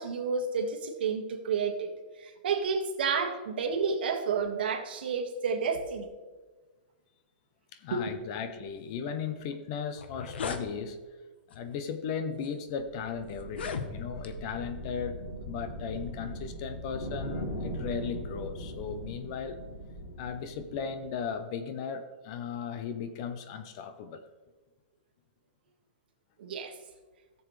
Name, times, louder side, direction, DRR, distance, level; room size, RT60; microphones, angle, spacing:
voice 1, 0.0-1.9 2.2-6.1 7.9-8.0 26.4-26.8, right 5 dB, 65° right, 3 dB, 1.7 m, -30 dB
voice 2, 7.7-11.0 11.5-19.6 20.2-24.2, left 6 dB, 30° left, 10 dB, 0.6 m, -36 dB
sound 1, 9.5-9.6 9.9-10.7 11.5-11.7 12.4-12.5 13.4-14.3, left 5 dB, 90° left, 1.0 m, -37 dB
sound 2, 12.7-21.2, equal, 70° left, 3.1 m, -40 dB
17.5 x 7.0 x 3.2 m, 1.3 s
supercardioid pair, 175°, 6 cm